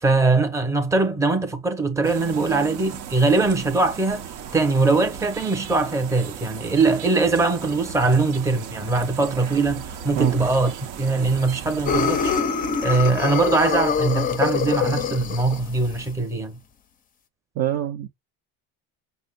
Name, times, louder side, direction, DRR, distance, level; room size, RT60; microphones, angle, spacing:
voice 1, 0.0-12.3 12.8-16.6, right 3 dB, 5° right, 0.8 m, -21 dB
sound 1, 2.0-12.4, right 8 dB, 75° right, 0.9 m, -36 dB
sound 2, 11.9-16.1, left 6 dB, 20° left, 0.5 m, -25 dB
voice 2, 17.6-18.1, right 12 dB, 40° right, 0.5 m, -25 dB
5.3 x 2.1 x 3.9 m
supercardioid pair, 115°, 39 cm